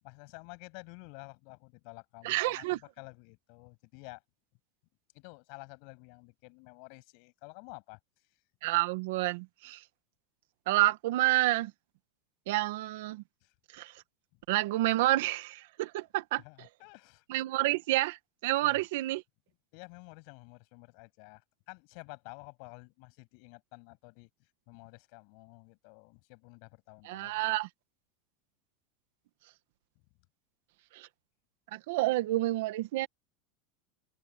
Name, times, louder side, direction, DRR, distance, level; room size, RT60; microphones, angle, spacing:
voice 1, 0.0-4.2 5.1-8.4 13.4-13.5 16.4-17.2 18.6-18.8 19.7-27.5, left 38 dB, 50° left, 7.9 m, -51 dB
voice 2, 2.2-2.8 8.6-9.8 10.7-11.7 12.5-13.2 13.7-13.9 14.5-16.4 17.3-19.2 27.0-27.7 30.9-31.1 31.7-33.1, right 18 dB, 65° right, 1.6 m, -29 dB
open air
supercardioid pair, 160°, 0 cm